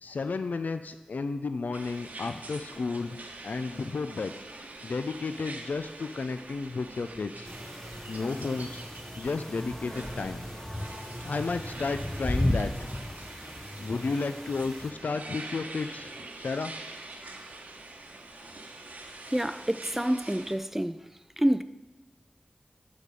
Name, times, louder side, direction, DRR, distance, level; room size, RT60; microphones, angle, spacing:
voice 1, 0.0-3.2 3.4-4.3 4.8-7.5 8.1-8.8 9.2-10.5 11.2-12.9 13.8-16.7, left 4 dB, 85° left, 0.4 m, -32 dB
sound 1, 1.7-20.5, right 2 dB, 80° right, 1.0 m, -45 dB
sound 2, 6.9-12.8, right 1 dB, 30° right, 0.9 m, -47 dB
sound 3, 7.5-14.9, left 1 dB, 15° left, 0.7 m, -35 dB
voice 2, 19.3-21.1 21.4-21.6, equal, 10° right, 0.4 m, -27 dB
12.0 x 4.2 x 4.8 m
wide cardioid pair, 45°, 3 cm